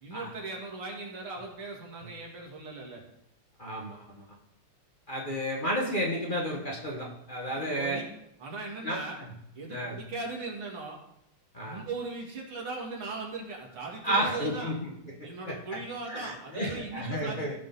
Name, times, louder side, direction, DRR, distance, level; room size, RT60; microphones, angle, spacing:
voice 1, 0.0-3.0 7.5-8.1 8.4-9.2 9.5-11.0 11.6-14.7 15.2-17.6, right 3 dB, 90° right, -1 dB, 3.1 m, -39 dB
voice 2, 3.6-4.2 5.1-8.0 8.8-9.3 9.7-10.0 11.5-11.8 14.0-15.8 16.1-17.6, equal, 25° left, -2 dB, 1.3 m, -32 dB
15.5 x 6.2 x 4.1 m, 0.78 s
omnidirectional pair, 2.3 m